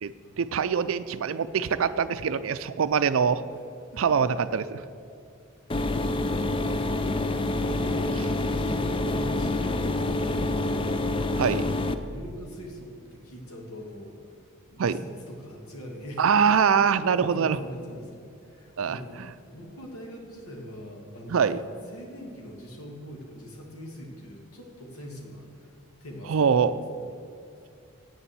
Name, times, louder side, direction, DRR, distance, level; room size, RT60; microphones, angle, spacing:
voice 1, 0.0-3.4 4.0-4.8 7.6-7.8 11.4-11.6 14.8-15.0 16.2-17.6 18.8-19.3 21.3-21.6 26.3-26.7, right 6 dB, 70° right, 12 dB, 0.4 m, -24 dB
sound 1, 5.7-11.9, left 2 dB, 25° left, 0.4 m, -27 dB
voice 2, 6.6-11.3 11.7-14.4 14.7-16.3 17.1-19.2 19.5-21.5 21.9-25.7 26.0-26.5 27.0-27.2, equal, 85° left, 0 dB, 1.7 m, -43 dB
8.6 x 7.0 x 7.5 m, 2.5 s
head